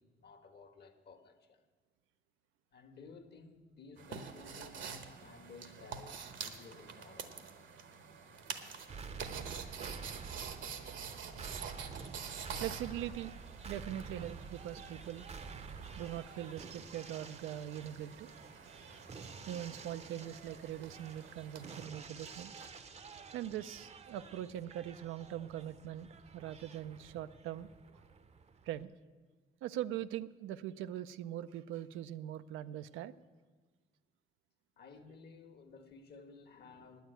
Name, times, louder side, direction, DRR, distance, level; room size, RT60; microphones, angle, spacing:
voice 1, 0.0-1.6 2.7-7.3 12.9-13.0 13.9-14.1 34.8-37.0, left 4 dB, 55° left, 1.3 m, -55 dB
sound 1, 4.0-21.9, right 6 dB, 75° right, 1.1 m, -48 dB
sound 2, 8.9-28.8, right 5 dB, 35° right, 0.6 m, -50 dB
voice 2, 12.6-13.3 13.6-15.3 16.0-18.3 19.5-22.5 23.3-27.7 27.9-28.0 28.6-28.9 29.6-33.1, right 11 dB, 90° right, 0.5 m, -42 dB
9.3 x 9.2 x 8.9 m
cardioid pair, 90°, 20 cm